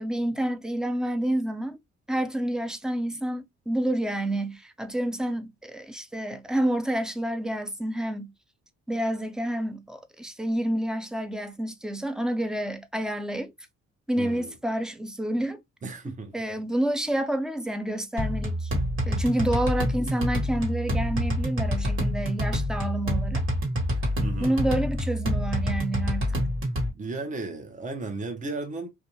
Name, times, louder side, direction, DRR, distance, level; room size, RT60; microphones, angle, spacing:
voice 1, 0.0-1.8 2.1-8.3 8.9-13.5 14.1-15.6 16.3-18.7 19.1-23.4 24.4-26.4, right 1 dB, ahead, 0.4 m, -29 dB
voice 2, 14.2-14.6 15.8-16.3 19.2-19.3 24.2-24.6 26.8-28.9, right 3 dB, 25° right, 0.8 m, -35 dB
sound 1, 18.2-26.9, equal, 45° right, 1.5 m, -27 dB
2.5 x 2.3 x 2.9 m
cardioid pair, 90°, 30 cm